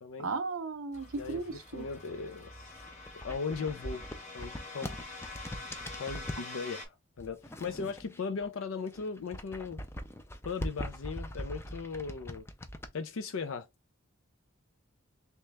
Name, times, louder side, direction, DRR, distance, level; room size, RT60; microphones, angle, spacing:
voice 1, 0.2-1.9, right 4 dB, 80° right, 0.7 m, -36 dB
sound 1, 0.9-6.9, left 2 dB, 35° left, 1.2 m, -46 dB
voice 2, 1.2-2.7 3.2-4.0 4.3-5.0 6.0-9.8 10.4-12.5 12.9-13.7, left 5 dB, 70° left, 0.5 m, -38 dB
sound 2, 2.6-6.5 7.2-8.5 8.8-12.9, equal, 10° left, 0.4 m, -41 dB
3.2 x 3.0 x 3.3 m
head